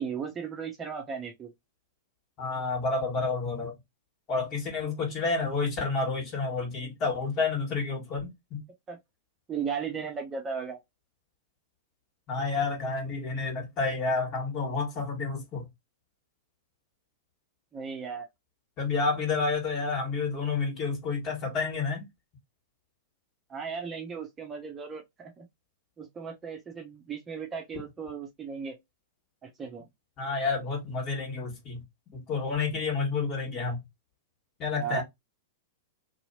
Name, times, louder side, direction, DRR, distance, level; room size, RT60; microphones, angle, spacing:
voice 1, 0.0-1.5 8.9-9.0 9.5-10.8 17.7-18.3 23.5-25.5 26.0-28.8 29.4-29.9 34.8-35.0, right 6 dB, 20° right, 0.7 m, -36 dB
voice 2, 2.4-3.8 4.3-8.6 12.3-15.7 18.8-22.1 30.2-31.8 32.1-33.8 34.6-35.0, left 4 dB, 40° left, 1.9 m, -30 dB
2.8 x 2.7 x 2.8 m
hypercardioid pair, 100°, 0 cm